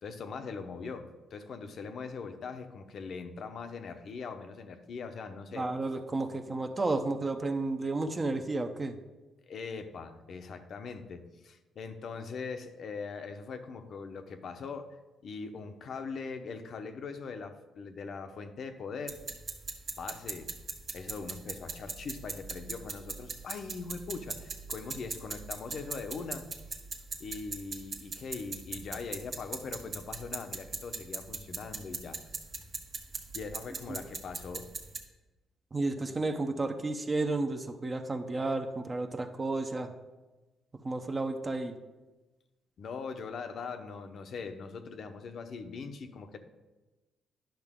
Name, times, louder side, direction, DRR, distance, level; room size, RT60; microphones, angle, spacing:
voice 1, 0.0-5.7 9.4-14.9 15.2-19.2 20.0-20.5 20.9-26.8 27.2-32.2 33.3-34.7 42.8-46.4, left 5 dB, 60° left, 8 dB, 0.8 m, -41 dB
voice 2, 5.5-9.0 35.7-39.9 40.8-41.8, right 2 dB, 30° right, 6 dB, 0.8 m, -32 dB
sound 1, 19.1-35.0, right 4 dB, 50° right, 1.2 m, -41 dB
10.5 x 5.8 x 3.7 m, 1.1 s
cardioid pair, 75°, 0 cm